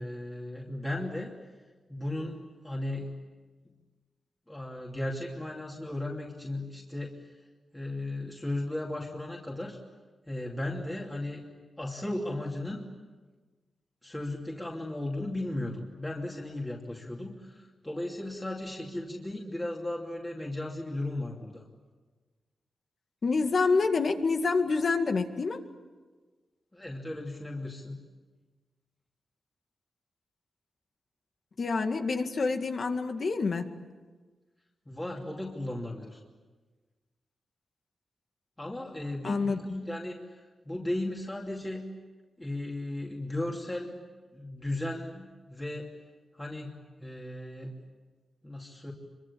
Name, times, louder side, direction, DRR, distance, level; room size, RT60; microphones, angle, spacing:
voice 1, 0.0-1.3 1.9-3.1 4.5-7.2 7.7-9.8 10.3-11.4 11.8-12.9 14.0-21.6 26.7-28.0 34.9-36.2 38.6-40.2 40.6-41.8 42.4-44.0 44.3-45.9 46.3-46.7 47.0-47.7 48.4-48.9, left 1 dB, 15° left, -2 dB, 2.9 m, -36 dB
voice 2, 23.2-25.6 31.6-33.6 39.2-39.6, left 4 dB, 55° left, 6 dB, 2.0 m, -27 dB
26.0 x 24.0 x 8.7 m, 1.4 s
wide cardioid pair, 100°, 0 cm